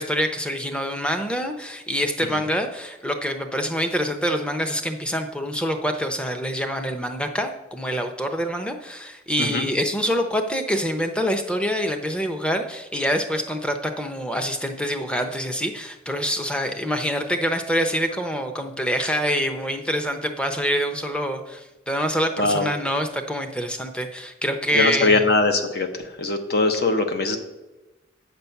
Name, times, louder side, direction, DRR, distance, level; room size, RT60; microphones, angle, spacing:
voice 1, 0.0-25.2, equal, 5° left, 6 dB, 0.7 m, -26 dB
voice 2, 9.4-9.7 22.4-22.7 24.7-27.4, left 3 dB, 55° left, 6 dB, 1.0 m, -21 dB
9.0 x 6.8 x 5.8 m, 1.1 s
head